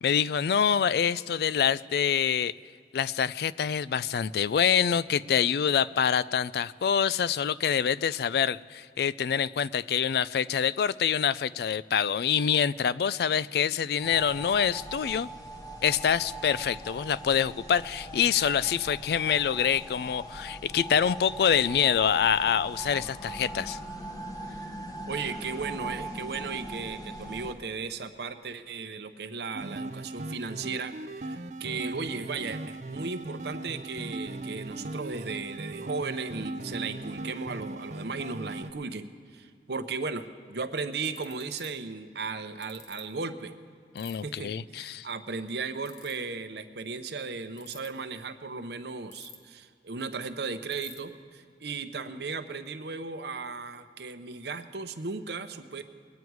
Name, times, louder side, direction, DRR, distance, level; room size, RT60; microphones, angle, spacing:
voice 1, 0.0-2.5 2.9-15.3 15.8-23.8 43.9-45.1, left 8 dB, 60° left, 19 dB, 0.3 m, -26 dB
sound 1, 14.0-27.5, right 1 dB, 20° left, 1.0 m, -41 dB
voice 2, 25.1-43.5 44.2-55.8, right 4 dB, 70° right, 9 dB, 0.8 m, -36 dB
sound 2, 29.5-38.7, right 2 dB, 40° right, 0.5 m, -38 dB
Ratchet pawl, 41.0-41.7 42.6-43.0 44.0-44.1 45.8-46.1 47.5-47.9 49.1-49.6 49.9-50.0 50.2-50.3 50.7-51.0, left 4 dB, 45° left, 1.4 m, -47 dB
21.5 x 9.4 x 4.7 m, 2.2 s
head